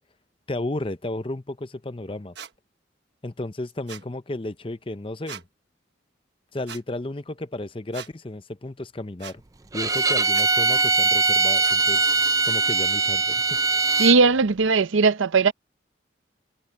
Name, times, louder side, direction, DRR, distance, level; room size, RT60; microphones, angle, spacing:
voice 1, 0.5-2.3 3.2-5.4 6.5-9.4 9.7-13.6, left 2 dB, 25° left, 0.7 m, -33 dB
sound 1, 2.4-2.5 3.9-4.1 5.3-5.4 6.7-6.8 7.9-8.1 9.2-9.4 10.3-10.5 11.6-11.8, right 8 dB, 60° right, 1.3 m, -39 dB
Bowed string instrument, 9.7-14.2, right 4 dB, 15° right, 0.4 m, -21 dB
voice 2, 14.0-15.5, right 4 dB, 80° right, 0.7 m, -18 dB
head